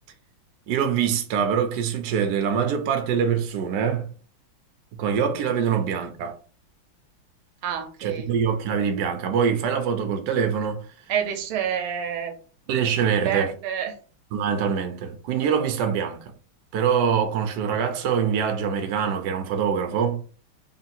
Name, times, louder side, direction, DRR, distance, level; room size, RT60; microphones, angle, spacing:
voice 1, 0.7-4.1 4.9-6.3 8.0-10.9 12.7-13.5 14.3-16.3 16.7-20.2, right 7 dB, 65° right, 1.2 m, -24 dB
voice 2, 7.6-8.3 11.1-12.4 13.0-14.0, right 8 dB, 80° right, 1.6 m, -28 dB
3.5 x 2.9 x 4.3 m
omnidirectional pair, 2.3 m